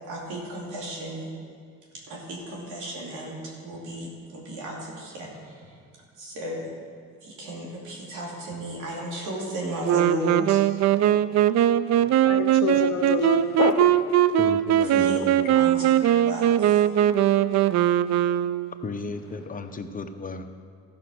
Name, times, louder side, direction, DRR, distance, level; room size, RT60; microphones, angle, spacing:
voice 1, 0.1-1.3 2.1-5.8 6.2-6.7 7.2-10.6 14.8-15.2 15.5-15.8 16.2-16.9, equal, 90° right, -3 dB, 2.6 m, -34 dB
Wind instrument woodwind instrument, 9.8-18.9, right 11 dB, 60° right, 0.4 m, -21 dB
voice 2, 12.0-14.0 16.0-16.2, left 7 dB, 70° left, 4 dB, 0.7 m, -28 dB
voice 3, 14.4-15.4 18.8-20.5, left 3 dB, 30° left, 7 dB, 0.8 m, -35 dB
14.0 x 6.0 x 6.1 m, 2.2 s
cardioid pair, 90°, 30 cm